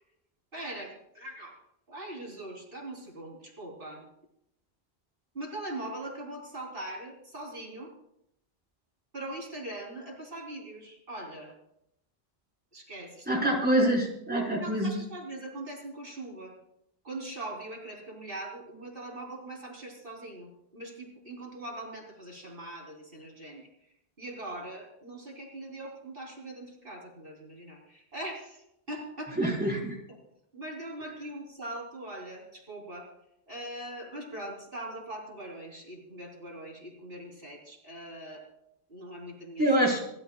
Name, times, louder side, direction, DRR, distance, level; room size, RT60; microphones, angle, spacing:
voice 1, 0.5-1.6 1.9-4.0 5.3-7.9 9.1-11.5 12.7-13.5 14.6-16.5 17.0-23.7 24.2-29.7 30.5-33.1 33.5-38.5 38.9-39.7, right 1 dB, 60° right, -1 dB, 3.7 m, -41 dB
voice 2, 13.3-14.9 29.4-29.8 39.6-40.0, right 1 dB, 10° right, -4 dB, 4.6 m, -25 dB
29.0 x 12.5 x 2.3 m, 0.78 s
omnidirectional pair, 1.0 m